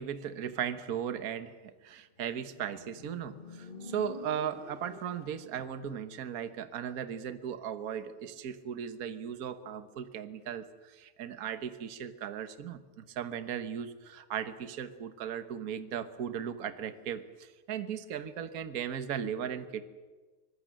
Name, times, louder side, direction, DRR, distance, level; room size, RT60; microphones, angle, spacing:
voice 1, 0.0-12.8 13.1-19.8, right 8 dB, 50° right, 9 dB, 1.4 m, -37 dB
Motorcycle, 2.2-5.7, left 2 dB, 30° left, 1.3 m, -48 dB
24.5 x 20.0 x 7.7 m, 1.3 s
omnidirectional pair, 2.4 m